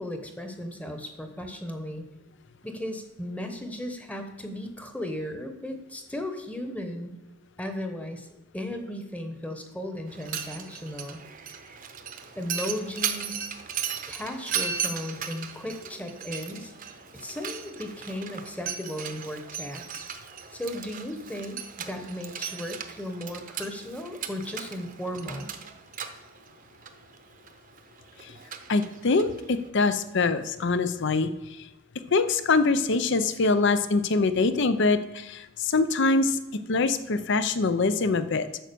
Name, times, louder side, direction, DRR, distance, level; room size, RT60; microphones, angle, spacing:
voice 1, 0.0-2.1 2.6-7.1 7.6-8.3 8.5-11.2 12.4-13.5 14.1-16.7 17.1-20.0 20.5-25.5, left 1 dB, 5° left, 6 dB, 1.0 m, -36 dB
Mechanisms, 10.1-29.7, right 7 dB, 45° right, 0.8 m, -37 dB
voice 2, 28.7-31.3 32.1-36.4 36.7-38.5, left 3 dB, 65° left, 12 dB, 0.6 m, -24 dB
8.9 x 6.2 x 6.8 m, 0.93 s
head